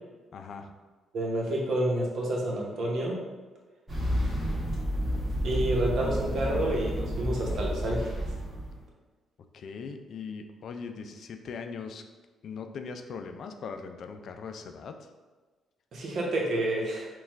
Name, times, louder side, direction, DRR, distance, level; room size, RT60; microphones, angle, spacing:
voice 1, 0.3-0.7 9.5-12.0 12.4-15.1, left 5 dB, 65° left, 6 dB, 0.3 m, -40 dB
voice 2, 1.1-3.1 5.4-8.1 15.9-17.1, right 1 dB, 65° right, -2 dB, 0.9 m, -29 dB
sound 1, 3.9-8.8, equal, 35° right, 1.3 m, -30 dB
4.3 x 2.4 x 3.5 m, 1.3 s
supercardioid pair, 65°, 0 cm